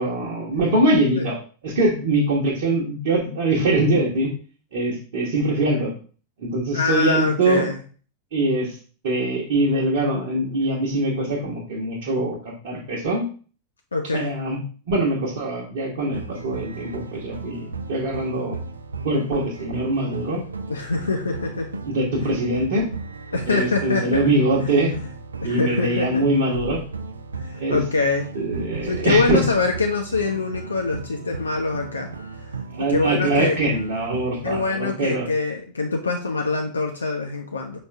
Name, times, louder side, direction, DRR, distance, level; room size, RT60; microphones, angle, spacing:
voice 1, 0.0-4.3 4.7-5.9 6.4-7.6 8.3-8.8 9.0-12.4 12.6-13.3 14.1-14.6 14.9-18.6 19.0-20.4 21.8-22.9 23.5-24.9 25.4-26.8 27.6-27.8 28.3-29.4 32.7-35.3, right 2 dB, 55° right, -5 dB, 1.1 m, -23 dB
voice 2, 6.7-7.8 13.9-14.3 20.7-21.8 22.2-22.3 23.3-24.3 24.6-25.1 25.4-26.2 27.4-28.3 28.8-32.1 32.4-32.6 32.9-33.6 34.4-37.8, left 4 dB, 75° left, 3 dB, 0.5 m, -24 dB
sound 1, 16.1-34.7, right 4 dB, 75° right, 0.4 m, -35 dB
4.8 x 2.5 x 3.3 m, 0.39 s
figure-of-eight pair, 90°, 0 cm